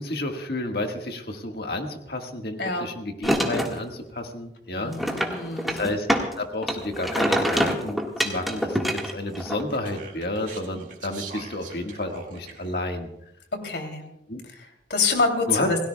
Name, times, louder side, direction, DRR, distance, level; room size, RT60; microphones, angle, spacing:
voice 1, 0.0-5.3 5.7-6.1 6.4-13.1 14.3-14.4 15.5-15.7, left 1 dB, 60° left, 3 dB, 1.7 m, -31 dB
sound 1, 3.2-3.8 4.9-6.3 6.6-9.6, equal, ahead, 1.6 m, -25 dB
voice 2, 4.7-5.8 13.6-14.0 14.5-15.8, left 4 dB, 80° left, 4 dB, 2.9 m, -26 dB
Speech, 9.3-12.8, right 4 dB, 45° right, 2.1 m, -42 dB
28.0 x 17.0 x 2.3 m, 0.82 s
head